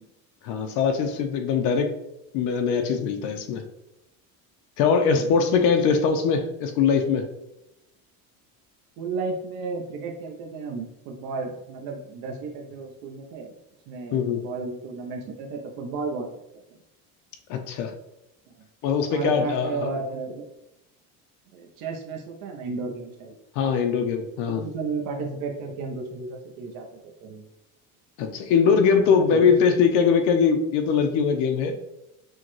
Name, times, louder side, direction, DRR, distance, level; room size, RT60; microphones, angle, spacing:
voice 1, 0.4-1.9 2.3-3.6 4.8-7.2 14.1-14.4 17.5-17.9 18.8-19.9 23.6-24.7 28.2-31.7, left 6 dB, 55° left, 6 dB, 0.5 m, -22 dB
voice 2, 9.0-13.5 13.9-16.3 19.1-20.5 21.5-23.3 24.5-27.5 29.3-29.6, right 4 dB, 65° right, 1 dB, 0.7 m, -33 dB
6.2 x 2.2 x 3.0 m, 0.89 s
cardioid pair, 180°, 38 cm